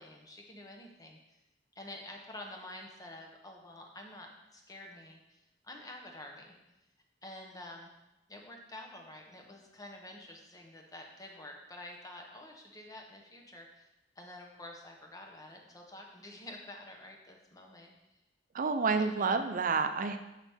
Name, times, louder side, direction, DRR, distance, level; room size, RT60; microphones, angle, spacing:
voice 1, 0.0-1.4 1.7-6.6 7.2-7.9 8.3-13.9 14.2-17.9 18.8-19.6, left 1 dB, 20° left, 1 dB, 1.0 m, -49 dB
voice 2, 18.5-20.2, right 4 dB, 50° right, 8 dB, 0.5 m, -29 dB
7.2 x 5.9 x 3.5 m, 0.94 s
head